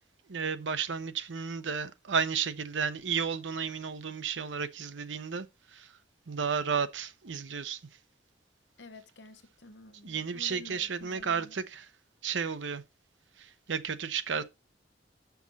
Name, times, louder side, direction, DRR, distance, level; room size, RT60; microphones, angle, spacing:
voice 1, 0.3-5.9 6.3-7.8 10.0-11.9 12.2-12.8 13.4-14.4, right 6 dB, 90° right, 0.7 m, -33 dB
voice 2, 8.8-11.5, left 2 dB, 70° left, 1.0 m, -51 dB
7.3 x 5.9 x 4.1 m
head